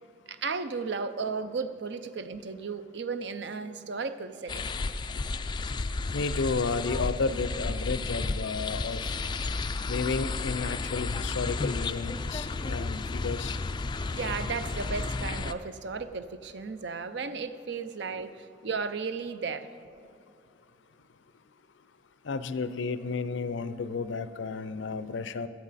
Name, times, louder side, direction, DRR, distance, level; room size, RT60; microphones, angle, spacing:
voice 1, 0.3-4.8 14.1-19.7, right 5 dB, 65° right, 11 dB, 0.6 m, -34 dB
sound 1, 4.5-15.5, left 3 dB, 25° left, 0.3 m, -32 dB
voice 2, 6.1-9.0 9.9-13.6 22.2-25.5, left 4 dB, 75° left, 13 dB, 0.5 m, -32 dB
17.0 x 13.0 x 4.1 m, 2.6 s
head